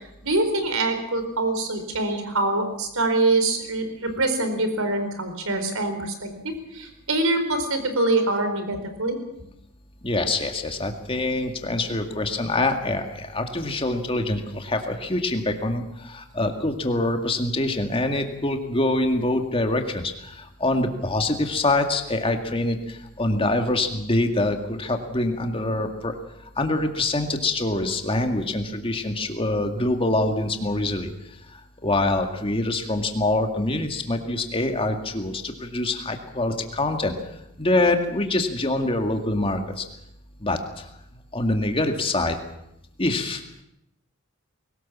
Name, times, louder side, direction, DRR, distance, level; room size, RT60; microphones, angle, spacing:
voice 1, 0.2-9.2, right 2 dB, 75° right, 7 dB, 4.4 m, -24 dB
voice 2, 10.0-26.2 26.6-31.1 31.5-37.2 37.6-39.9 40.4-40.9 41.3-42.4 43.0-43.6, left 2 dB, 25° left, 5 dB, 2.2 m, -25 dB
22.0 x 18.5 x 7.4 m, 0.82 s
head